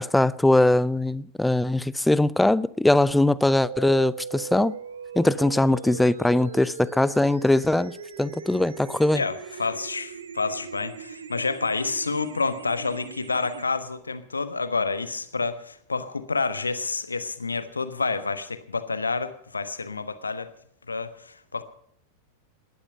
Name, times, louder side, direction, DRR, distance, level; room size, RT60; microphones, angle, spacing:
voice 1, 0.0-4.7 5.2-9.2, left 1 dB, 5° left, 0.5 m, -21 dB
sound 1, 3.6-13.6, right 6 dB, 70° right, 1.3 m, -39 dB
voice 2, 9.1-20.5 20.9-21.6, left 4 dB, 80° left, 1.2 m, -29 dB
19.0 x 12.0 x 5.6 m
figure-of-eight pair, 90°, 0 cm